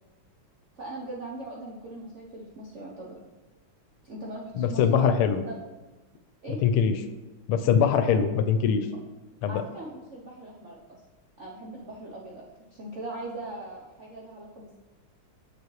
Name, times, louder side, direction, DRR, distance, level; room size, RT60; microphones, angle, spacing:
voice 1, 0.7-3.2 4.0-5.1 5.5-5.6 6.4-6.6 9.5-11.0 11.4-14.8, right 2 dB, 65° right, -3 dB, 0.7 m, -40 dB
voice 2, 4.5-5.4 6.6-6.9 7.5-8.9 9.4-9.6, left 7 dB, 80° left, 9 dB, 1.5 m, -22 dB
7.0 x 6.8 x 3.1 m, 1.2 s
omnidirectional pair, 2.4 m